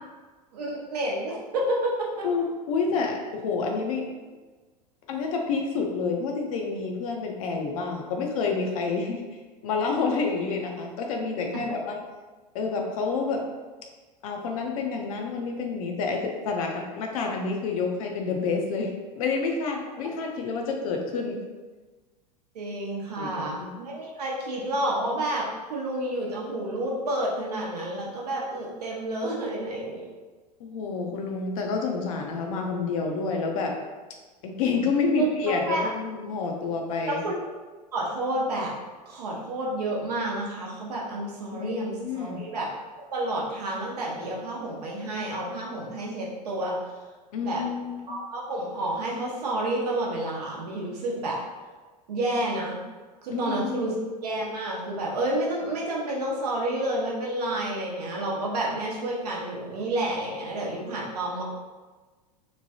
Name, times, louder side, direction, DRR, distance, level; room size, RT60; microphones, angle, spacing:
voice 1, 0.5-2.2 22.5-30.1 35.2-35.9 37.1-37.4 37.9-38.7 39.1-42.7 43.1-46.8 47.4-47.6 48.1-51.4 52.1-52.8 53.2-53.9 54.2-61.4, right 1 dB, 70° right, -3 dB, 0.8 m, -30 dB
voice 2, 2.2-4.1 5.1-9.2 9.6-12.0 12.5-13.4 14.2-21.4 23.2-23.7 30.6-33.8 34.4-37.2 41.5-42.4 47.3-48.1 53.3-54.0, left 4 dB, 55° left, 1 dB, 0.5 m, -28 dB
3.0 x 2.2 x 2.7 m, 1.3 s
figure-of-eight pair, 90°, 21 cm